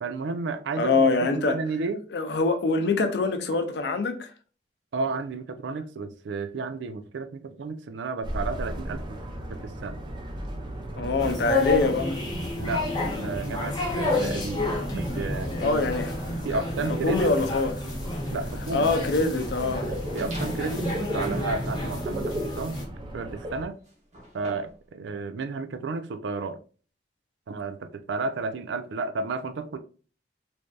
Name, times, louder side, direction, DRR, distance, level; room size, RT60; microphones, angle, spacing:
voice 1, 0.0-2.0 4.9-9.2 9.5-10.0 12.6-12.9 13.2-14.7 15.0-15.9 16.4-17.4 18.3-18.9 19.9-22.8 23.1-23.8 24.3-26.6 27.5-29.8, right 4 dB, 85° right, 0.4 m, -32 dB
voice 2, 0.8-1.6 2.1-4.3 11.0-12.2 15.6-16.4 17.0-17.7 18.7-19.9, left 3 dB, 65° left, 0.5 m, -24 dB
sound 1, 8.2-23.7, equal, 25° right, 0.5 m, -37 dB
sound 2, 11.2-22.8, left 2 dB, 25° left, 0.8 m, -30 dB
sound 3, 20.2-20.8 21.2-24.9, equal, 40° right, 0.9 m, -46 dB
3.2 x 2.6 x 2.3 m
head